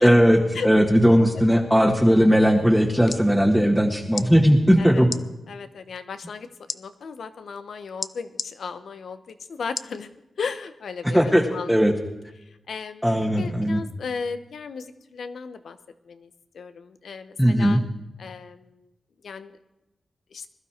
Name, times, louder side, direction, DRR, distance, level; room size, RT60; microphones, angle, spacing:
voice 1, 0.0-5.1 11.0-11.9 13.0-13.8 17.4-17.8, equal, ahead, 0 dB, 1.7 m, -18 dB
sound 1, 3.0-3.3 4.1-4.3 5.0-5.2 6.7-6.8 8.0-8.5 9.7-10.0 10.5-10.6, left 4 dB, 55° left, 0.5 m, -32 dB
voice 2, 4.8-5.1 5.5-10.1 10.4-11.8 12.7-13.1 13.4-15.8 16.0-17.8 18.2-18.9 19.2-19.6 20.3-20.5, left 5 dB, 75° left, 11 dB, 1.0 m, -35 dB
21.0 x 12.0 x 4.5 m, 0.94 s
cardioid pair, 60°, 0 cm